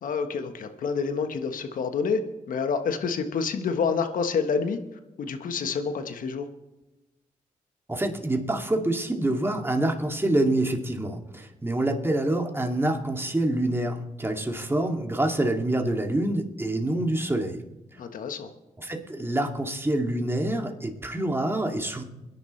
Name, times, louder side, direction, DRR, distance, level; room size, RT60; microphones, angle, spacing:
voice 1, 0.0-2.2 2.5-4.8 5.2-6.5 18.0-18.5, left 5 dB, 70° left, 8 dB, 1.3 m, -28 dB
voice 2, 7.9-17.6 18.8-22.0, right 1 dB, 15° right, 2 dB, 2.5 m, -26 dB
23.0 x 10.5 x 3.3 m, 1.0 s
supercardioid pair, 50°, 14 cm